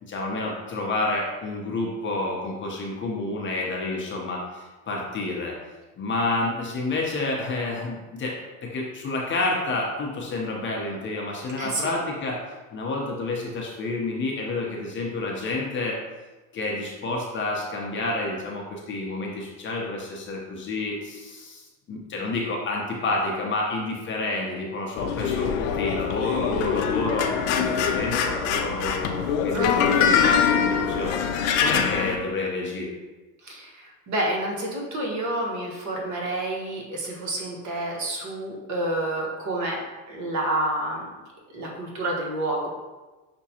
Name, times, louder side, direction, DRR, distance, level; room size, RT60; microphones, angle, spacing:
voice 1, 0.0-5.6 6.0-12.4 12.7-16.0 16.5-31.2 31.6-32.9, left 2 dB, 30° left, -1 dB, 0.7 m, -29 dB
voice 2, 11.6-12.0 29.5-30.0 33.4-39.8 40.1-41.0 41.5-42.7, right 1 dB, 45° right, -1 dB, 1.2 m, -29 dB
sound 1, 25.0-32.2, left 7 dB, 75° left, 0.5 m, -23 dB
6.0 x 2.2 x 2.8 m, 1.2 s
supercardioid pair, 100°, 40 cm